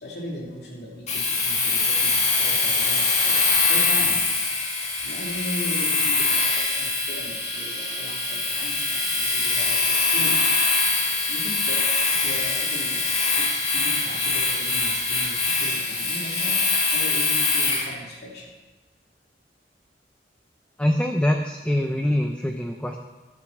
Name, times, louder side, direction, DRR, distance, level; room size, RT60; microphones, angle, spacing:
voice 1, 0.0-4.2 5.0-10.6 11.3-11.8 12.1-13.0 13.4-16.6 16.9-18.5, equal, 65° left, -2 dB, 2.8 m, -38 dB
Domestic sounds home sounds, 1.1-17.9, left 3 dB, 40° left, 2.0 m, -23 dB
voice 2, 20.8-23.0, left 1 dB, 5° left, 2 dB, 0.5 m, -24 dB
11.5 x 6.7 x 6.5 m, 1.2 s
head